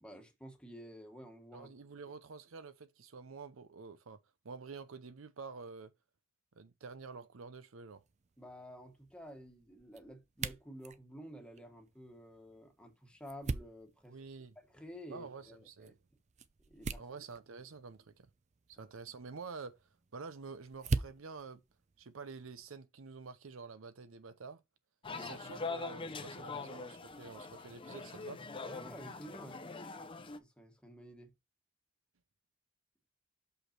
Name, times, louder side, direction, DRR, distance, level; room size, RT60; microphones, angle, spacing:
voice 1, 0.0-1.7 2.1-2.2 8.4-14.2 14.7-15.9 16.7-17.0 25.1-25.3 28.6-29.6 30.4-31.3, equal, 5° left, 1.4 m, -51 dB
voice 2, 1.5-4.2 4.4-5.9 6.5-8.0 14.1-14.5 15.1-16.0 16.9-18.3 18.7-19.8 20.1-21.6 22.0-24.6 25.1-28.4, right 4 dB, 70° right, 0.6 m, -48 dB
sound 1, 7.9-22.8, right 3 dB, 35° right, 0.5 m, -45 dB
sound 2, 25.0-30.4, left 4 dB, 25° left, 0.7 m, -43 dB
6.4 x 5.4 x 4.3 m
head